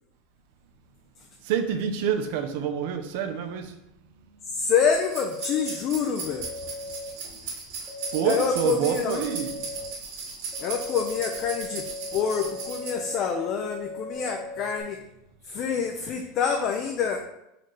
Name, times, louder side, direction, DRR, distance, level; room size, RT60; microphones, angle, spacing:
voice 1, 1.4-3.7 8.1-9.6, right 8 dB, 65° right, 7 dB, 0.6 m, -27 dB
voice 2, 4.5-6.5 8.2-9.2 10.6-11.9 12.1-15.0 15.5-17.2, left 6 dB, 40° left, 4 dB, 0.4 m, -27 dB
sound 1, 4.9-12.9, right 4 dB, 80° right, 1.6 m, -37 dB
sound 2, 5.0-5.7 6.3-7.1 7.9-8.5 9.2-9.9 10.5-14.8, left 2 dB, 15° right, 1.2 m, -38 dB
4.2 x 3.1 x 3.9 m, 0.86 s
supercardioid pair, 150°, 0 cm